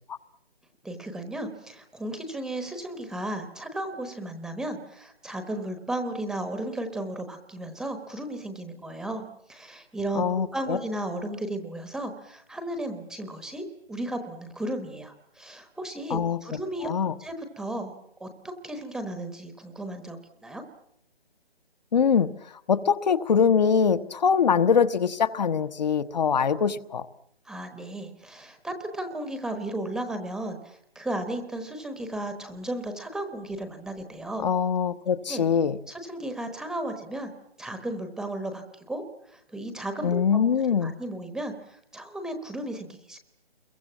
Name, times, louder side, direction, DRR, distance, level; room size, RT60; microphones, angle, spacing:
voice 1, 0.8-10.3 10.5-16.9 17.2-17.9 18.2-18.3 18.6-20.6 27.4-34.5 35.3-35.4 35.9-37.3 37.6-39.0 39.3-40.5 40.8-43.2, right 1 dB, ahead, 7 dB, 1.0 m, -34 dB
voice 2, 10.1-10.8 16.1-16.4 16.8-17.1 21.9-22.3 22.7-27.1 34.4-35.8 40.0-40.9, left 6 dB, 45° left, 10 dB, 1.1 m, -23 dB
28.0 x 22.5 x 7.2 m, 0.72 s
figure-of-eight pair, 145°, 30 cm